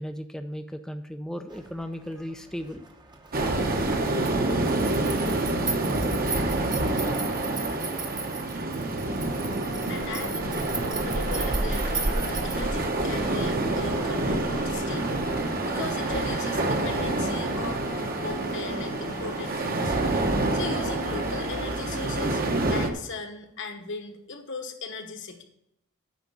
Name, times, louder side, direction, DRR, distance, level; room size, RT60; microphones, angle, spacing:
voice 1, 0.0-2.8, equal, ahead, 7 dB, 0.4 m, -37 dB
sound 1, 1.5-12.6, right 5 dB, 20° right, 0.8 m, -38 dB
sound 2, 3.3-22.9, right 2 dB, 45° right, 1.0 m, -27 dB
sound 3, 9.0-22.7, left 2 dB, 35° left, 1.0 m, -41 dB
voice 2, 9.9-10.7 11.0-15.3 15.7-19.9 20.5-22.4 22.7-25.4, left 3 dB, 60° left, 5 dB, 1.2 m, -38 dB
9.5 x 5.1 x 6.9 m, 0.81 s
head